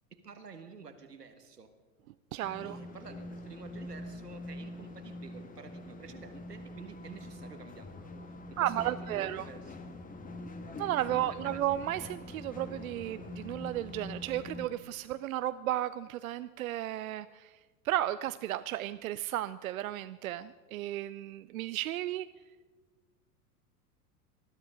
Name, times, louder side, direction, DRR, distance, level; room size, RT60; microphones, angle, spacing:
voice 1, 0.2-1.7 2.6-9.8 11.1-11.6, right 5 dB, 85° right, 8 dB, 1.6 m, -50 dB
voice 2, 2.3-2.8 8.6-9.4 10.8-17.5 17.8-22.3, right 13 dB, 65° right, 14 dB, 0.6 m, -34 dB
sound 1, 2.4-14.7, left 1 dB, 15° left, 1.5 m, -44 dB
20.0 x 13.0 x 5.0 m, 1.4 s
figure-of-eight pair, 85°, 46 cm